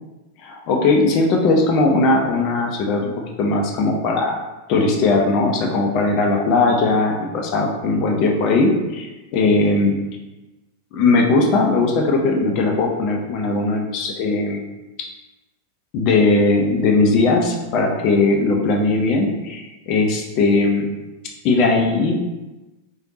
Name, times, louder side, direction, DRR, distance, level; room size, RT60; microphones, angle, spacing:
voice 1, 0.4-3.1 3.4-4.4 4.7-10.0 10.9-14.6 15.9-20.9 21.4-22.2, left 3 dB, 40° left, 0 dB, 0.6 m, -18 dB
3.6 x 3.4 x 2.8 m, 1.1 s
figure-of-eight pair, 90°, 0 cm